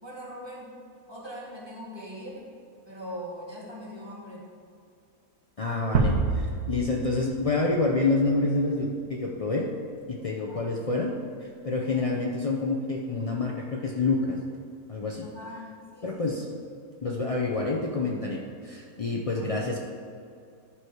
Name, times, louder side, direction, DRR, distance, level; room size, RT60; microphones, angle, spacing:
voice 1, 0.0-0.7 1.1-2.5 2.9-4.4 10.4-10.7 11.8-12.1 15.2-16.4 19.3-19.5, equal, 15° right, -5 dB, 1.8 m, -41 dB
voice 2, 5.6-9.7 10.1-11.1 11.4-14.4 14.9-15.3 16.0-16.5 17.0-19.9, left 3 dB, 65° left, -1 dB, 0.3 m, -28 dB
sound 1, 5.9-8.9, right 4 dB, 80° right, 1.3 m, -28 dB
11.5 x 4.8 x 4.6 m, 2.3 s
omnidirectional pair, 1.6 m